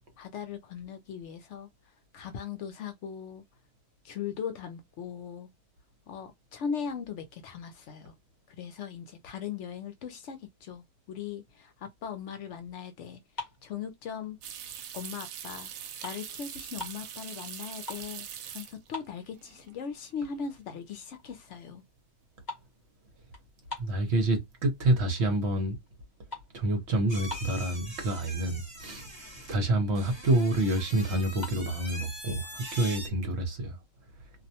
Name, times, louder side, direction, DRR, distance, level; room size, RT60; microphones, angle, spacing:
voice 1, 0.2-1.7 2.1-3.4 4.0-5.5 6.1-8.1 8.5-14.4 14.9-21.8, left 7 dB, 65° left, 0.8 m, -39 dB
sound 1, 13.2-14.6 15.1-15.3 15.6-17.1 17.6-18.2 18.5-18.6 18.9-19.8 20.2-20.3 20.8-20.9 21.2-21.5 21.8-24.6 25.1-25.5 25.8-27.8 28.5-28.6 28.8-29.0 29.4-29.5 29.7-30.4 31.2-31.6, left 1 dB, 35° left, 1.0 m, -44 dB
sound 2, 14.4-19.1 19.4-20.0 20.3-20.4 23.1-23.5 23.8-24.3, right 9 dB, 80° right, 1.0 m, -42 dB
voice 2, 23.8-25.7 26.5-29.1 29.5-33.8, right 1 dB, 55° right, 1.0 m, -28 dB
sound 3, 27.1-33.1, equal, 15° right, 1.2 m, -43 dB
2.5 x 2.1 x 2.7 m
omnidirectional pair, 1.4 m